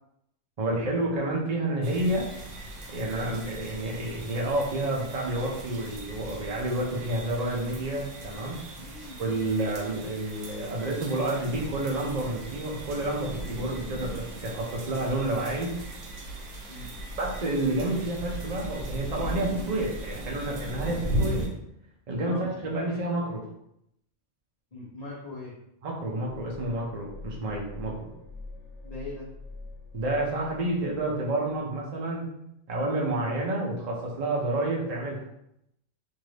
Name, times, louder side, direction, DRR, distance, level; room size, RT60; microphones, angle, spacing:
voice 1, 0.6-2.3 2.9-8.6 9.2-15.7 17.2-21.4 22.1-23.4 25.8-28.1 29.9-32.2 32.7-35.3, right 1 dB, 40° right, -2 dB, 0.6 m, -29 dB
sound 1, 1.8-21.5, right 1 dB, 80° right, 1.0 m, -37 dB
voice 2, 8.8-9.2 16.7-16.9 22.2-22.5 24.7-25.5 28.8-29.3, left 3 dB, 40° left, -8 dB, 0.7 m, -40 dB
sound 2, 26.2-31.2 31.5-31.6, left 2 dB, 85° left, 1.0 m, -44 dB
2.7 x 2.6 x 3.1 m, 0.79 s
omnidirectional pair, 1.2 m